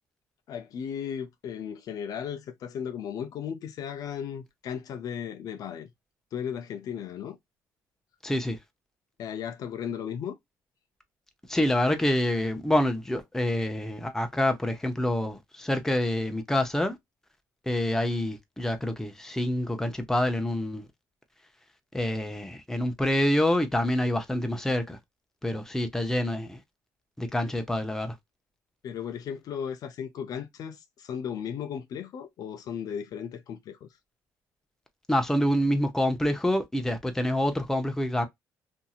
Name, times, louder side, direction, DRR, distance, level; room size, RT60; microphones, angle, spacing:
voice 1, 0.5-5.9 6.3-7.4 9.2-10.4 28.8-33.9, left 8 dB, 60° left, 0.5 m, -36 dB
voice 2, 8.2-8.6 11.5-17.0 17.7-20.9 21.9-25.0 25.4-26.6 27.2-28.1 35.1-38.3, left 1 dB, 5° left, 0.7 m, -27 dB
2.8 x 2.7 x 2.3 m
cardioid pair, 105°, 7 cm